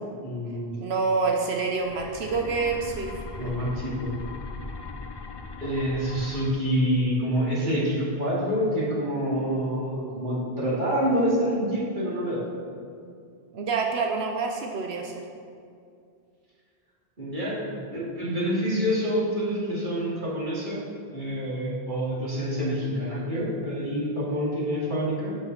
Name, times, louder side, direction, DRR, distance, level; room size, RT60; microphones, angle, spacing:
voice 1, 0.2-0.9 3.4-4.1 5.6-12.5 17.2-20.8 21.1-25.4, equal, 50° right, -7 dB, 2.6 m, -27 dB
voice 2, 0.8-3.1 3.4-3.5 13.5-15.1, right 4 dB, 85° right, 1 dB, 1.0 m, -27 dB
sound 1, 1.6-6.5, left 4 dB, 40° left, 0.4 m, -39 dB
8.1 x 6.1 x 5.9 m, 2.3 s
omnidirectional pair, 1.0 m